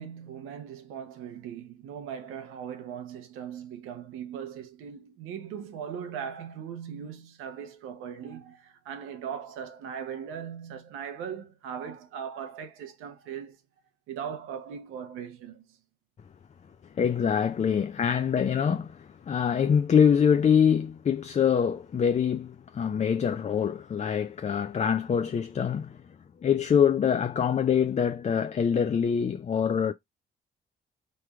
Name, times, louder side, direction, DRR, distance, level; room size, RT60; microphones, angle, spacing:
voice 1, 0.0-13.6 14.1-15.6, right 8 dB, 85° right, 0.8 m, -39 dB
voice 2, 17.0-26.0 26.4-29.9, left 7 dB, 35° left, 0.4 m, -24 dB
3.3 x 3.3 x 2.3 m
supercardioid pair, 55°, 21 cm